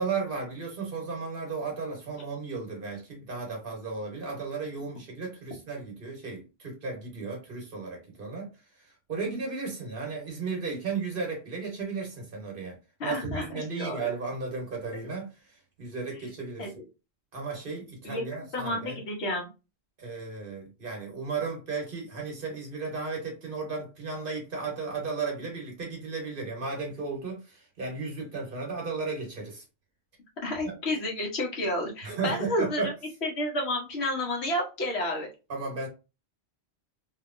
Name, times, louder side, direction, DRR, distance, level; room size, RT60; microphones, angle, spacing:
voice 1, 0.0-16.7 17.3-19.0 20.0-29.6 30.6-30.7 32.0-32.9 35.5-35.9, right 4 dB, 55° right, 1.2 m, -35 dB
voice 2, 13.0-14.1 16.6-16.8 18.0-18.2 18.5-19.5 30.4-32.9 33.2-35.3, left 1 dB, 75° left, 1.3 m, -30 dB
2.9 x 2.7 x 2.5 m
omnidirectional pair, 1.1 m